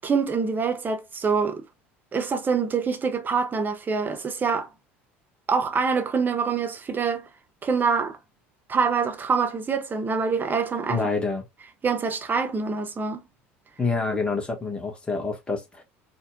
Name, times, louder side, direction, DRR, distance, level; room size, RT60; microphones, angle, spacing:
voice 1, 0.0-1.6 2.1-4.7 5.5-7.3 7.6-8.2 8.7-11.0 11.8-13.2, right 5 dB, 30° right, 0.8 m, -25 dB
voice 2, 10.9-11.4 13.8-15.8, left 4 dB, 15° left, 1.3 m, -27 dB
4.1 x 2.2 x 2.6 m
hypercardioid pair, 70°, 7 cm